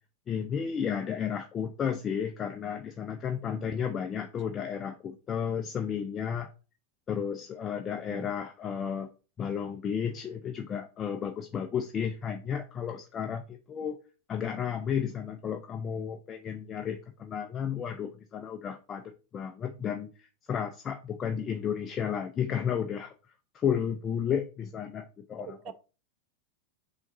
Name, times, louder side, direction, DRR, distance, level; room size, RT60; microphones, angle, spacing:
voice 1, 0.3-6.5 7.1-9.1 9.4-14.0 14.3-19.0 19.3-23.1 23.5-25.6, left 8 dB, 25° left, 0.4 m, -33 dB
voice 2, 3.5-3.9 7.7-8.3 25.4-25.7, right 8 dB, 35° right, 0.4 m, -46 dB
5.7 x 2.9 x 2.7 m
figure-of-eight pair, 90°, 0 cm